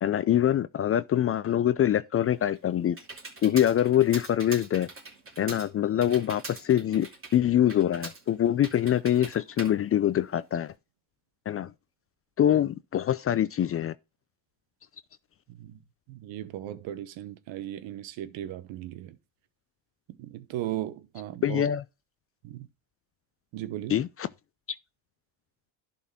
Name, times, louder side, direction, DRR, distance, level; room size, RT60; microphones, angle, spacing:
voice 1, 0.0-3.0 3.4-4.9 5.4-10.7 11.5-11.7 12.4-13.9 21.4-21.8 23.9-24.3, left 11 dB, 30° left, 0.4 m, -24 dB
Computer keyboard, 2.1-10.7, right 3 dB, 25° right, 2.8 m, -44 dB
voice 2, 15.5-15.8 16.1-19.2 20.2-21.6 22.4-22.7 23.5-24.0, right 13 dB, 70° right, 1.1 m, -37 dB
11.0 x 4.3 x 4.4 m
supercardioid pair, 75°, 48 cm